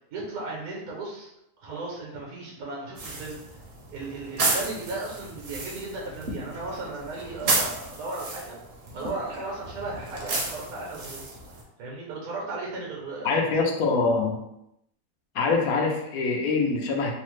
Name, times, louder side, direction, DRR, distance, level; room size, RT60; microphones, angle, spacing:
voice 1, 0.1-3.4 3.9-8.6 8.9-11.2 11.8-13.5, right 2 dB, 80° right, -3 dB, 1.2 m, -36 dB
sound 1, 3.0-11.6, right 3 dB, 55° right, 0.7 m, -32 dB
voice 2, 13.2-14.4 15.3-17.2, left 4 dB, 85° left, 1 dB, 1.1 m, -24 dB
3.2 x 2.0 x 3.1 m, 0.81 s
omnidirectional pair, 1.5 m